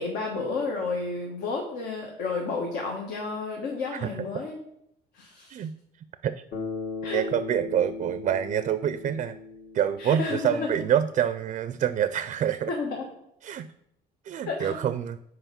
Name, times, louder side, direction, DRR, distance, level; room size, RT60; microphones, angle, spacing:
voice 1, 0.0-4.6 5.1-5.5 7.0-7.2 10.0-10.7 12.7-13.1 14.4-14.8, left 4 dB, 80° left, 0 dB, 1.3 m, -31 dB
voice 2, 3.9-4.3 5.5-5.7 6.2-6.4 7.1-9.4 9.7-12.7 13.4-13.7 14.2-15.2, right 9 dB, 45° right, 13 dB, 0.4 m, -27 dB
Bass guitar, 6.5-10.7, left 4 dB, 55° left, 1.8 m, -37 dB
5.6 x 4.7 x 5.7 m, 0.75 s
cardioid pair, 110°, 17 cm